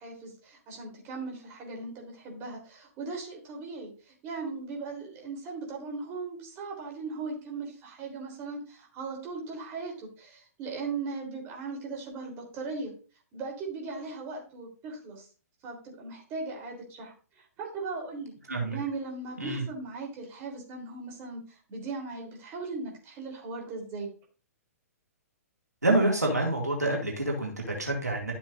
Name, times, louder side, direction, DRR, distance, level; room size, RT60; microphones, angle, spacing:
voice 1, 0.0-12.9 13.3-15.3 15.6-18.3 18.7-24.1, right 4 dB, 30° right, 0 dB, 3.6 m, -38 dB
voice 2, 18.5-18.8 19.4-19.7 25.8-28.3, right 2 dB, 90° right, -1 dB, 2.4 m, -27 dB
12.0 x 7.3 x 2.6 m, 0.37 s
figure-of-eight pair, 120°, 9 cm